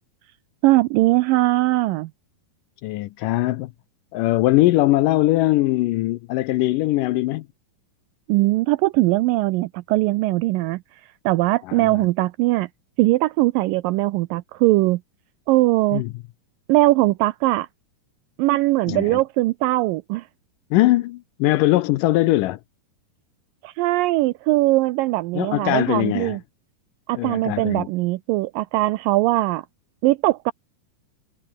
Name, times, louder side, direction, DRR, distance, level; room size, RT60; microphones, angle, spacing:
voice 1, 0.6-2.1 8.3-10.8 11.3-12.7 13.0-15.0 15.5-16.0 16.7-17.7 18.4-20.3 23.6-26.4 27.1-29.6 30.0-30.5, right 19 dB, 80° right, 2.0 m, -20 dB
voice 2, 2.8-3.7 4.1-7.5 11.6-12.0 15.9-16.1 18.9-19.2 20.7-22.6 25.3-26.4 27.1-27.9, left 17 dB, 80° left, 1.9 m, -21 dB
omnidirectional pair, 4.5 m